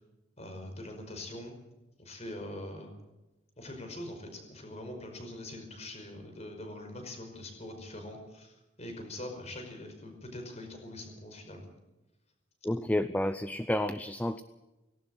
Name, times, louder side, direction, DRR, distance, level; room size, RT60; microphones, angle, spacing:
voice 1, 0.4-1.6 2.0-2.9 3.6-11.7, left 1 dB, 35° left, 5 dB, 5.2 m, -43 dB
voice 2, 12.6-14.4, left 1 dB, 10° left, 11 dB, 0.6 m, -30 dB
19.0 x 17.5 x 7.9 m, 1.0 s
head